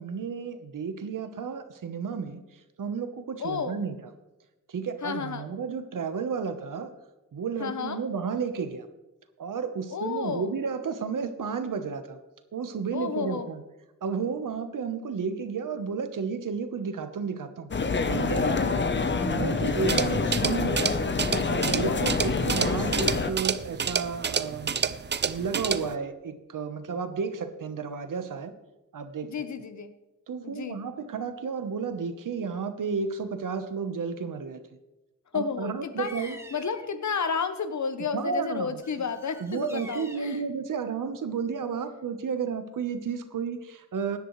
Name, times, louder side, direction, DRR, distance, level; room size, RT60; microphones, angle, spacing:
voice 1, 0.0-2.4 2.8-3.9 4.7-6.9 7.3-8.9 9.4-12.2 12.5-13.6 14.0-17.7 18.1-18.6 19.2-20.9 21.5-24.8 25.2-28.5 28.9-29.3 30.3-34.6 35.3-36.4 38.1-38.8 39.4-44.2, right 5 dB, 80° right, 9 dB, 1.1 m, -32 dB
voice 2, 3.4-3.8 5.0-5.5 7.6-8.0 9.9-10.5 12.9-13.5 18.4-18.9 21.8-22.2 29.2-29.9 30.4-30.8 35.3-40.4, left 6 dB, 65° left, 10 dB, 1.0 m, -32 dB
sound 1, 17.7-23.3, left 4 dB, 35° left, 0.8 m, -27 dB
sound 2, 19.7-25.9, right 6 dB, 35° right, 0.5 m, -30 dB
Bird vocalization bird call bird song, 36.0-36.9 38.8-40.4, equal, 10° right, 1.1 m, -46 dB
17.0 x 11.0 x 3.2 m, 1.0 s
wide cardioid pair, 100°, 31 cm